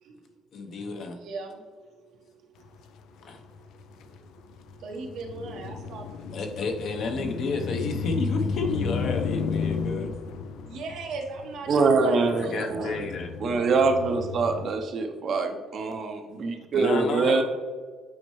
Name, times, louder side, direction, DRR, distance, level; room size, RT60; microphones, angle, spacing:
voice 1, 0.5-1.2 3.2-3.4 6.3-10.1 12.4-13.3 16.7-17.4, left 3 dB, 60° left, 4 dB, 0.8 m, -31 dB
voice 2, 1.1-1.6 4.8-6.3 10.7-13.0 13.6-13.7, right 3 dB, 80° right, 1 dB, 1.2 m, -38 dB
sound 1, 2.7-3.0 3.4-14.7, left 5 dB, 80° left, 0.4 m, -33 dB
voice 3, 11.7-12.9 13.4-17.4, right 4 dB, 50° right, 5 dB, 0.7 m, -24 dB
8.6 x 4.4 x 3.1 m, 1.5 s
cardioid pair, 125°, 0 cm